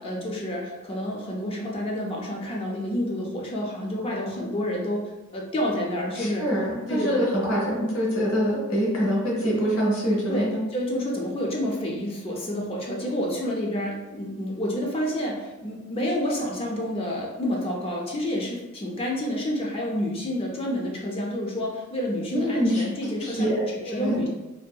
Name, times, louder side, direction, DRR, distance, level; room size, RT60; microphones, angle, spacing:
voice 1, 0.0-6.5 6.9-7.3 10.3-24.3, left 1 dB, 25° left, -2 dB, 0.3 m, -29 dB
voice 2, 6.2-10.6 22.3-23.6 23.8-24.2, equal, 75° left, -4 dB, 0.9 m, -25 dB
2.7 x 2.5 x 2.2 m, 1.1 s
head